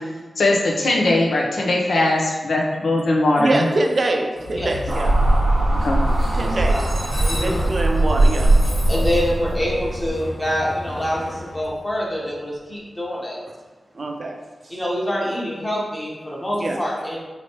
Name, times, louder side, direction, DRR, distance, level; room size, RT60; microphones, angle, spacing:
voice 1, 0.4-3.7 5.8-6.0, left 2 dB, 90° left, -1 dB, 0.7 m, -19 dB
voice 2, 3.4-5.1 6.4-6.8 7.3-8.7 13.9-14.4 14.6-14.8 16.5-16.8, right 2 dB, 50° right, 3 dB, 0.5 m, -24 dB
Train, 4.4-12.3, left 1 dB, 50° left, 1.2 m, -31 dB
sound 1, 4.9-10.1, right 2 dB, 75° right, 0.9 m, -19 dB
voice 3, 6.4-6.9 7.2-7.7 8.9-13.4 14.7-17.2, equal, 20° left, -4 dB, 1.0 m, -26 dB
4.4 x 3.0 x 2.9 m, 1.3 s
wide cardioid pair, 95°, 0 cm